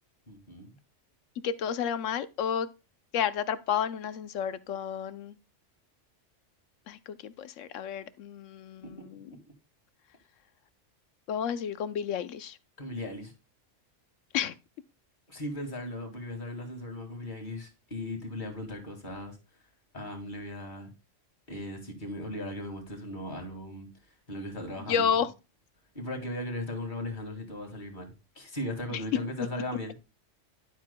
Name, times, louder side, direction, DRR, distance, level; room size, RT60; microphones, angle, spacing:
voice 1, 0.3-0.8 9.3-9.4 12.8-13.3 15.3-19.4 19.9-20.9 21.5-23.9 24.3-25.1 25.9-30.1, left 1 dB, 40° left, 2.3 m, -37 dB
voice 2, 1.4-2.7 3.1-5.4 6.9-9.3 11.3-12.6 14.3-14.5 24.9-25.3 28.9-29.0 29.4-29.5, left 8 dB, 90° left, 1.0 m, -31 dB
11.0 x 7.4 x 2.2 m
omnidirectional pair, 1.3 m